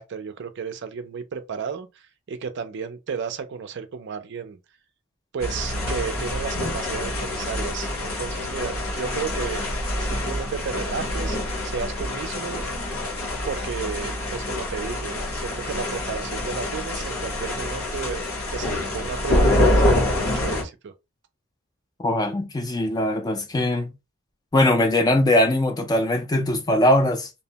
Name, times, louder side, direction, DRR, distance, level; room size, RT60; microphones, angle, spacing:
voice 1, 0.0-1.9 2.3-4.6 5.3-9.6 10.0-12.7 13.4-18.2 18.5-20.9, right 6 dB, 55° right, 0.4 m, -33 dB
sound 1, 5.4-20.6, left 1 dB, 75° left, 1.2 m, -26 dB
voice 2, 22.0-23.9 24.5-27.3, left 1 dB, 20° left, 0.4 m, -21 dB
2.7 x 2.1 x 2.8 m
head